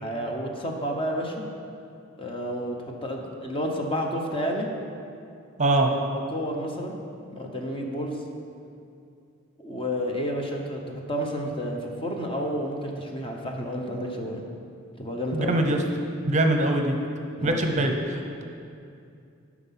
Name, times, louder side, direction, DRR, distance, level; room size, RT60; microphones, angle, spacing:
voice 1, 0.0-1.5 2.2-4.7 5.9-7.0 7.3-8.2 9.6-14.4 15.0-15.6 17.4-17.6, equal, 25° left, 1 dB, 1.0 m, -30 dB
voice 2, 5.6-5.9 15.3-15.8 16.3-16.9 17.4-18.4, right 1 dB, 35° right, 4 dB, 0.7 m, -23 dB
9.6 x 6.1 x 5.7 m, 2.5 s
head